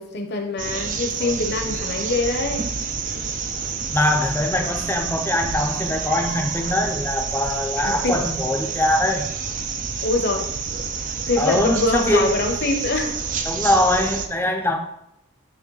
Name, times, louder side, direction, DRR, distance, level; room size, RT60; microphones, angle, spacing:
voice 1, 0.0-2.6 7.9-8.3 10.0-10.5 11.3-13.1, left 2 dB, 50° left, 4 dB, 0.9 m, -24 dB
sound 1, 0.6-14.3, right 5 dB, 35° right, 0.5 m, -28 dB
voice 2, 3.9-9.3 11.4-12.3 13.5-14.8, left 1 dB, 10° left, 4 dB, 0.6 m, -22 dB
9.2 x 3.2 x 4.0 m, 0.78 s
head